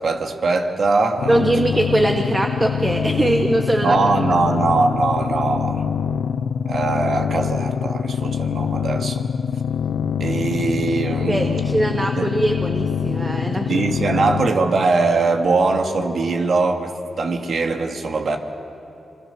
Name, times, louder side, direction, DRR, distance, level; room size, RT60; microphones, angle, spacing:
voice 1, 0.0-1.4 3.8-5.8 6.7-9.2 10.2-11.6 11.9-12.3 13.7-18.4, right 3 dB, 70° right, 4 dB, 2.3 m, -21 dB
sound 1, 1.2-14.5, left 7 dB, 85° left, 0.7 m, -24 dB
voice 2, 1.3-4.0 11.2-13.8 14.1-14.2, right 1 dB, 25° right, 3 dB, 1.8 m, -21 dB
26.0 x 25.0 x 6.9 m, 2.9 s
cardioid pair, 55°, 0 cm